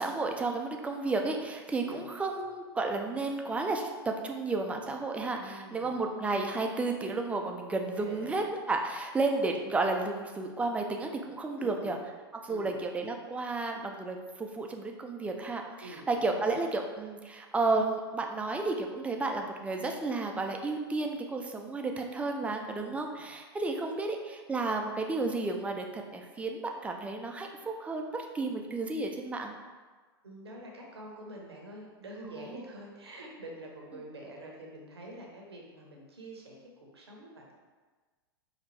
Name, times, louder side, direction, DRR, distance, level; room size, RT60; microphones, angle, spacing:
voice 1, 0.0-12.0 12.4-29.5 32.3-32.6, right 3 dB, 10° right, 3 dB, 0.4 m, -32 dB
voice 2, 5.4-6.0 8.0-8.4 9.0-9.1 11.6-11.9 12.5-12.8 15.8-16.4 22.8-23.3 30.2-37.5, right 1 dB, 85° right, -1 dB, 0.9 m, -46 dB
5.0 x 2.4 x 3.2 m, 1.4 s
figure-of-eight pair, 95°, 13 cm